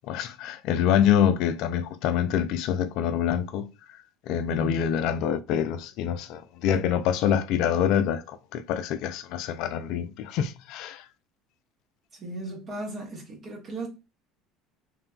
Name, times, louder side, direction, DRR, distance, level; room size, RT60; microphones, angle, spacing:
voice 1, 0.1-3.7 4.3-11.0, left 9 dB, 70° left, 0.3 m, -26 dB
voice 2, 4.5-4.9 12.1-13.9, right 2 dB, 45° right, 0.9 m, -36 dB
3.1 x 2.2 x 2.3 m
supercardioid pair, 85°, 0 cm